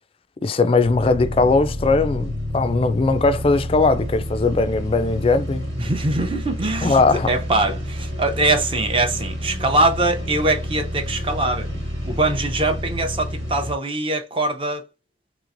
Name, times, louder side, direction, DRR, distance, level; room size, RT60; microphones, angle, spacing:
voice 1, 0.4-5.7 6.8-7.3, left 3 dB, 30° left, 0.3 m, -19 dB
sound 1, 0.8-13.7, equal, 90° right, 1.7 m, -29 dB
voice 2, 5.8-11.7 12.0-14.9, right 2 dB, 30° right, 0.6 m, -22 dB
3.2 x 3.0 x 2.6 m
head